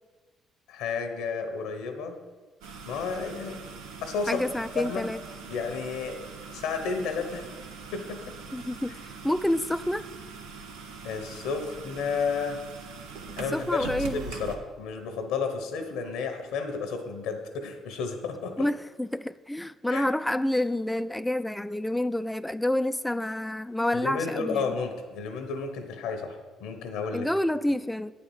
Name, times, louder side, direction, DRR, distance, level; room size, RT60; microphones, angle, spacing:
voice 1, 0.7-2.2 2.8-3.6 4.0-4.4 4.7-5.1 5.5-6.2 6.5-7.5 7.9-8.2 11.0-12.7 13.4-18.7 19.9-20.1 23.9-27.3, left 5 dB, 85° left, 6 dB, 0.9 m, -32 dB
sound 1, 2.6-14.5, right 5 dB, 85° right, 0.7 m, -42 dB
voice 2, 4.3-5.2 8.5-9.0 9.2-10.1 13.5-14.2 18.6-24.7 27.1-28.1, left 1 dB, 5° left, 14 dB, 0.3 m, -28 dB
8.7 x 4.3 x 7.2 m, 1.4 s
supercardioid pair, 65°, 0 cm